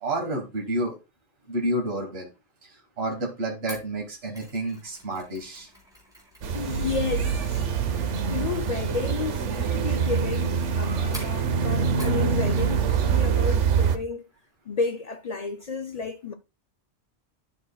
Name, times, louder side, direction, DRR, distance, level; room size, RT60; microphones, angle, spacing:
voice 1, 0.0-1.0 1.5-2.3 2.6-5.7, right 1 dB, 60° right, 1.8 m, -30 dB
Mechanisms, 3.7-12.3 12.6-13.0 13.3-13.4, equal, 5° right, 3.3 m, -48 dB
sound 1, 6.4-14.0, right 6 dB, 85° right, 1.1 m, -25 dB
voice 2, 6.5-7.7 8.3-14.3 14.7-16.3, left 4 dB, 60° left, 0.4 m, -32 dB
11.5 x 6.2 x 2.2 m
omnidirectional pair, 1.2 m